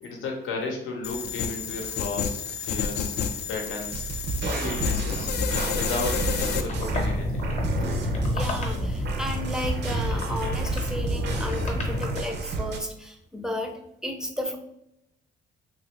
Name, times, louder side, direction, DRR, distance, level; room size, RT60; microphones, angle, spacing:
voice 1, 0.0-3.1 3.5-4.0 4.4-5.3 5.7-7.5, left 3 dB, 85° left, 1 dB, 0.7 m, -34 dB
sound 1, 1.0-6.6, left 7 dB, 55° left, 0.4 m, -30 dB
sound 2, 3.9-12.8, right 4 dB, 60° right, 0.5 m, -31 dB
sound 3, 6.7-12.2, left 2 dB, 35° left, 0.8 m, -30 dB
voice 2, 8.2-14.6, left 1 dB, 5° right, 4 dB, 0.5 m, -33 dB
3.0 x 2.5 x 3.1 m, 0.81 s
cardioid pair, 90°, 20 cm